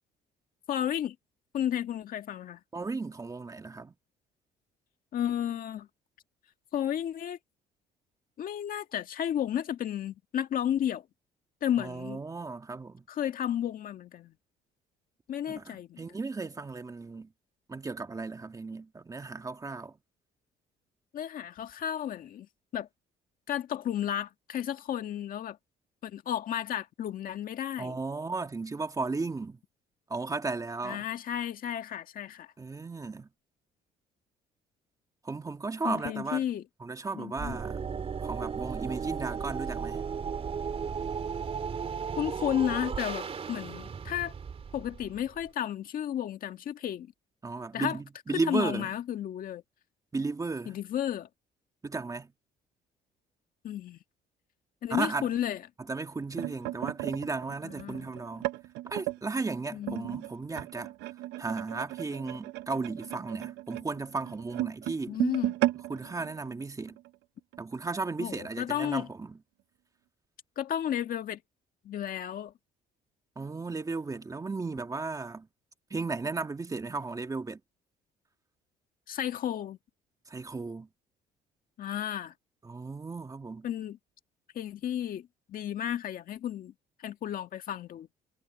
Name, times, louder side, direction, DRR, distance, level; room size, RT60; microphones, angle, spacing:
voice 1, 0.7-1.2 1.5-2.6 5.1-5.9 6.7-7.4 8.4-11.0 11.6-12.2 13.1-14.3 15.3-16.1 21.1-22.5 22.7-22.9 23.5-25.6 26.0-28.0 30.8-32.5 35.8-36.6 37.2-37.6 42.2-44.3 44.7-47.1 47.7-48.0 48.5-49.6 50.7-51.3 53.6-54.0 54.8-55.6 57.6-58.1 59.7-60.2 65.1-65.5 68.2-69.1 70.6-71.4 71.8-72.5 79.1-79.8 81.8-82.3 83.6-84.0 84.6-86.7 87.0-88.1, left 10 dB, 55° left, 1.8 m, -33 dB
voice 2, 2.7-3.9 11.8-13.0 15.5-17.3 17.7-19.9 27.8-29.6 30.1-31.1 32.6-33.3 35.2-36.4 36.8-37.8 38.2-40.0 47.4-48.9 50.1-50.8 51.8-52.3 54.9-55.3 55.9-58.5 58.9-60.9 61.4-65.2 65.9-67.0 67.6-69.4 73.4-75.5 75.9-77.6 80.3-80.9 82.6-83.7, right 3 dB, 20° right, 1.7 m, -35 dB
sound 1, 37.4-45.5, right 6 dB, 35° right, 3.2 m, -35 dB
sound 2, 56.0-59.2 59.8-67.1 67.5-67.7 68.0-68.3 69.0-69.1, right 16 dB, 90° right, 1.0 m, -35 dB
cardioid pair, 110°, 17 cm